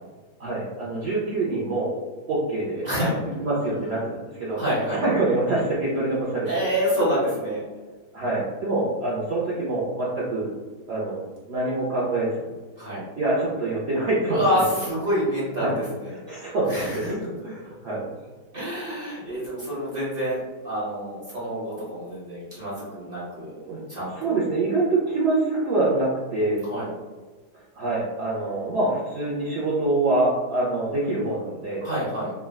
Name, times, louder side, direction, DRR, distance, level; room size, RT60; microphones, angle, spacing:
voice 1, 0.4-2.0 2.3-4.6 4.9-6.7 8.1-10.5 10.9-11.2 11.5-12.5 13.2-14.4 15.6-15.8 16.1-17.1 17.4-18.1 23.5-23.8 24.2-26.6 27.7-31.8, right 2 dB, 85° right, -6 dB, 0.5 m, -25 dB
voice 2, 2.8-3.2 4.5-5.0 6.5-7.6 12.8-13.0 14.3-15.7 16.0-16.1 16.4-17.1 18.5-23.6 23.9-24.4 26.6-26.9 31.8-32.3, equal, 40° right, -8 dB, 1.0 m, -27 dB
3.5 x 2.1 x 2.2 m, 1.4 s
omnidirectional pair, 1.8 m